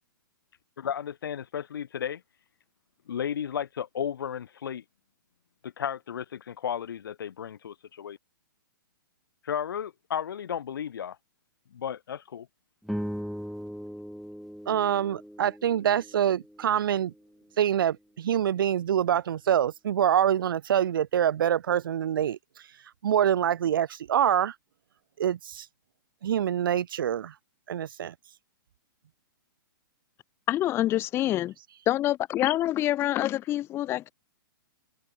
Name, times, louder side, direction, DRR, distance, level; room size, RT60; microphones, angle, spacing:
voice 1, 0.8-2.2 3.1-4.8 5.6-8.2 9.4-11.2 11.7-12.5, left 8 dB, 75° left, 2.4 m, -34 dB
sound 1, 12.8-17.4, equal, ahead, 1.3 m, -39 dB
voice 2, 14.7-17.1 17.6-22.4 23.0-24.5 25.2-25.6 26.2-27.3 27.7-28.1, right 10 dB, 70° right, 0.8 m, -25 dB
voice 3, 30.5-31.5 31.9-34.1, left 14 dB, 20° left, 0.6 m, -26 dB
hypercardioid pair, 140°, 12 cm